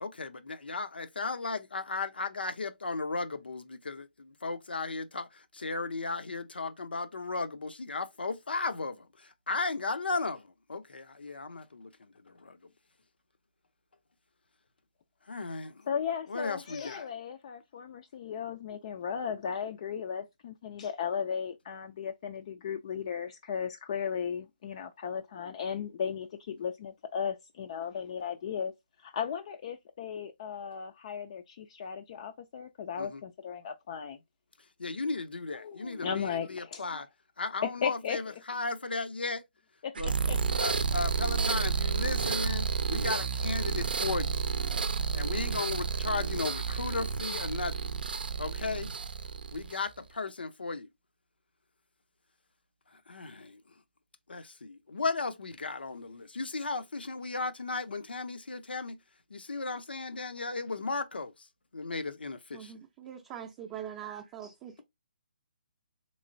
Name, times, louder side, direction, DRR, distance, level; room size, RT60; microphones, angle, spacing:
voice 1, 0.0-12.6 15.2-15.9 16.3-17.1 33.0-33.2 34.8-37.1 37.4-39.4 40.0-40.1 40.6-44.4 45.1-47.9 48.4-48.9 49.5-50.9 52.9-53.7 54.3-59.0 59.3-62.7, left 3 dB, 85° left, 0.6 m, -35 dB
voice 2, 15.9-28.7 29.0-34.2 35.6-36.8 37.6-38.2 39.8-39.9 40.3-40.4, left 7 dB, 40° left, 0.3 m, -36 dB
sound 1, 40.0-50.0, right 5 dB, 70° right, 0.5 m, -31 dB
voice 3, 62.5-64.8, right 9 dB, 20° right, 0.5 m, -43 dB
3.6 x 3.1 x 2.6 m
hypercardioid pair, 150°, 5 cm